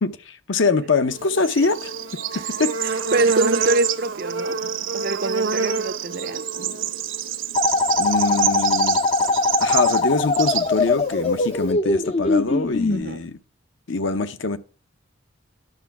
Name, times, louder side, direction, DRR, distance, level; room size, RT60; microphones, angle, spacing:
voice 1, 0.0-1.9 2.6-2.7 8.0-9.0 9.6-13.4 13.9-14.6, left 3 dB, 65° left, 0.8 m, -23 dB
Bird / Insect, 1.1-11.7, right 7 dB, 70° right, 1.0 m, -27 dB
voice 2, 2.8-4.6 4.9-6.5 12.9-13.3, right 2 dB, 50° right, 0.6 m, -25 dB
sound 1, 7.5-13.0, left 3 dB, 30° left, 0.5 m, -21 dB
11.0 x 6.8 x 5.9 m
head